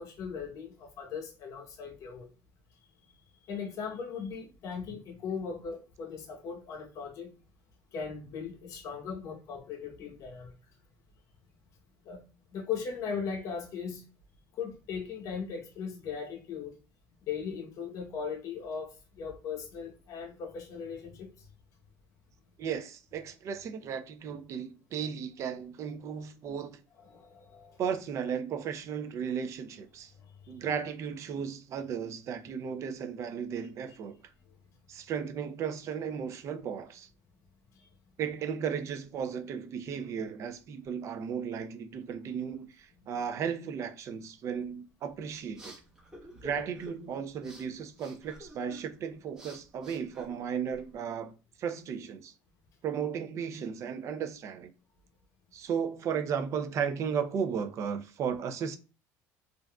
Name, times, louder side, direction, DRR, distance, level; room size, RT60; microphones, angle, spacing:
voice 1, 0.0-2.3 3.5-7.3 7.9-10.5 12.0-12.2 12.5-14.0 14.6-16.7 17.2-21.3 27.0-27.8 37.8-37.9 46.5-46.6, left 6 dB, 55° left, 0.9 m, -38 dB
voice 2, 22.6-26.8 27.8-30.1 30.5-34.2 34.9-37.1 38.2-45.8 46.3-51.3 51.6-52.3 52.8-54.7 55.5-58.8, right 7 dB, 45° right, 0.5 m, -35 dB
sound 1, 45.1-51.0, equal, 10° right, 1.3 m, -52 dB
3.5 x 2.5 x 2.3 m
cardioid pair, 125°, 7 cm